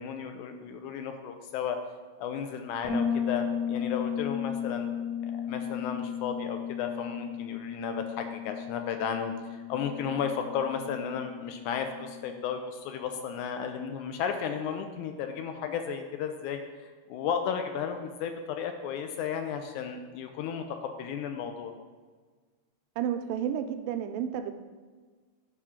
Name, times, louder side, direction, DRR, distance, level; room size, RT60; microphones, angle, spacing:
voice 1, 0.0-1.8 2.2-4.9 5.2-9.3 9.7-16.6 17.1-21.7, left 7 dB, 80° left, 6 dB, 1.9 m, -34 dB
Bass guitar, 2.8-12.5, left 7 dB, 60° left, 2.1 m, -35 dB
voice 2, 23.0-24.5, right 9 dB, 85° right, 8 dB, 2.2 m, -31 dB
9.1 x 3.7 x 5.7 m, 1.5 s
omnidirectional pair, 3.8 m